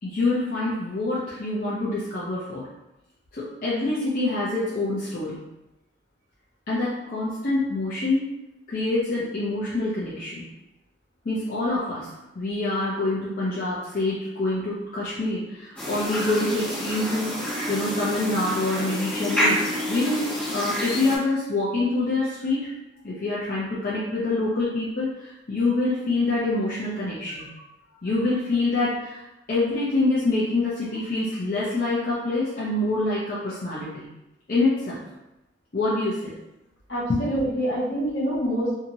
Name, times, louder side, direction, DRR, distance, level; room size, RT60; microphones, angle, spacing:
voice 1, 0.0-2.7 3.3-5.5 6.7-8.3 8.7-10.5 11.2-22.7 23.0-27.5 28.0-34.1 34.5-35.0 35.7-36.4 37.1-37.4, left 2 dB, 45° left, -8 dB, 0.5 m, -26 dB
sound 1, 15.8-21.2, equal, 5° left, 0.9 m, -28 dB
voice 2, 36.9-38.7, right 1 dB, 70° left, -6 dB, 1.1 m, -26 dB
2.8 x 2.7 x 2.6 m, 0.93 s
head